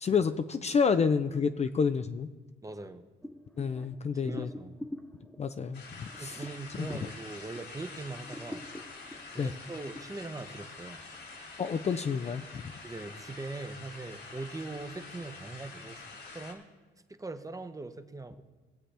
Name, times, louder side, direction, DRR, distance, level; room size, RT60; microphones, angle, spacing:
voice 1, 0.0-2.3 3.6-4.5 5.4-6.4 9.4-9.5 11.6-12.4, left 5 dB, 35° left, 10 dB, 0.4 m, -29 dB
voice 2, 2.6-3.0 4.1-4.8 6.2-8.7 9.3-11.1 12.8-16.0 16.3-16.7 17.1-18.4, right 3 dB, 15° right, 9 dB, 0.8 m, -41 dB
sound 1, 3.2-7.8 8.2-10.0, left 1 dB, 5° left, 1.0 m, -45 dB
sound 2, 5.7-16.5, left 3 dB, 55° left, 2.1 m, -47 dB
19.5 x 7.4 x 3.4 m, 1.3 s
cardioid pair, 90°, 20 cm